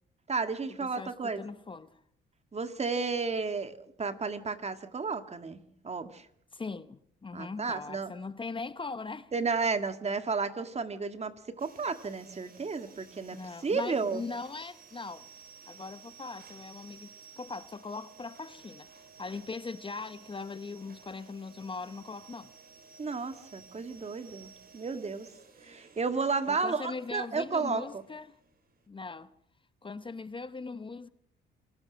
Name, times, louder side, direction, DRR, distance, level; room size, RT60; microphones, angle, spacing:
voice 1, 0.3-1.4 2.5-5.6 5.8-6.3 7.3-8.1 9.3-14.2 23.0-25.3 25.6-28.0, right 4 dB, 35° right, 1.9 m, -32 dB
voice 2, 0.8-1.9 6.5-9.3 13.3-15.3 15.7-22.5 26.5-28.4 28.9-29.3 29.8-31.1, left 4 dB, 25° left, 0.8 m, -40 dB
sound 1, 11.6-28.9, right 6 dB, 50° right, 4.1 m, -55 dB
27.5 x 16.5 x 6.2 m
cardioid pair, 90°, 20 cm